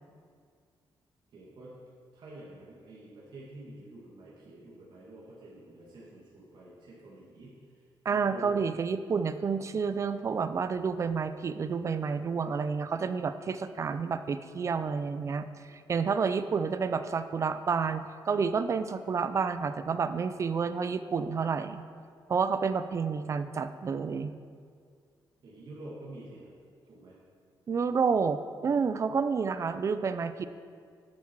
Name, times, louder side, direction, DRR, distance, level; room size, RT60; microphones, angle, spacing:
voice 1, 1.3-1.7 2.1-7.6 8.1-8.7 16.4-16.8 25.4-26.5 26.9-27.2, right 1 dB, 55° right, -7 dB, 2.1 m, -48 dB
voice 2, 8.1-15.5 15.9-21.8 22.3-24.3 27.7-30.4, right 5 dB, 35° right, 11 dB, 0.4 m, -29 dB
12.0 x 7.3 x 4.6 m, 2.1 s
wide cardioid pair, 175°, 9 cm